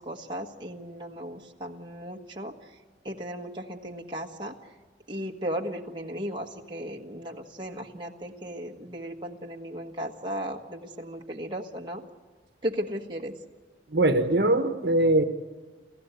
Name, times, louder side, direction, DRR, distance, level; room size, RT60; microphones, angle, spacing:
voice 1, 0.0-2.5 3.0-4.5 5.1-12.0 12.6-13.3, equal, 25° right, 0 dB, 1.4 m, -36 dB
voice 2, 13.9-15.2, right 1 dB, 65° right, 7 dB, 1.3 m, -22 dB
29.5 x 15.0 x 8.2 m, 1.3 s
head